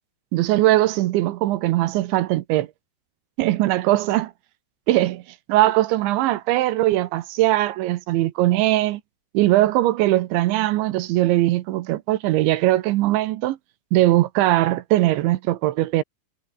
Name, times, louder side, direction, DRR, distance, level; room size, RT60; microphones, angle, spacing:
voice 1, 0.3-2.7 3.4-4.3 4.9-5.2 5.5-9.0 9.3-13.6 13.9-16.0, right 16 dB, 80° right, 3.1 m, -20 dB
omnidirectional pair, 5.7 m